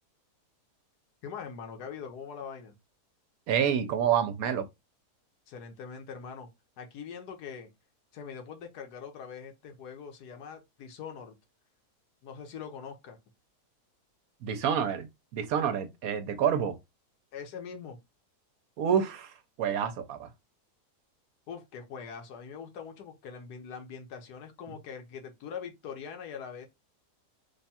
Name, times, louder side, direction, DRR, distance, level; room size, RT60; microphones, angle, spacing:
voice 1, 1.2-2.7 5.5-6.5 6.8-7.7 8.1-11.4 12.2-13.2 17.3-18.0 21.5-26.7, left 6 dB, 80° left, 1.4 m, -42 dB
voice 2, 3.5-4.7 14.4-16.8 18.8-20.3, right 8 dB, 70° right, 1.0 m, -28 dB
3.5 x 2.2 x 4.1 m
omnidirectional pair, 1.7 m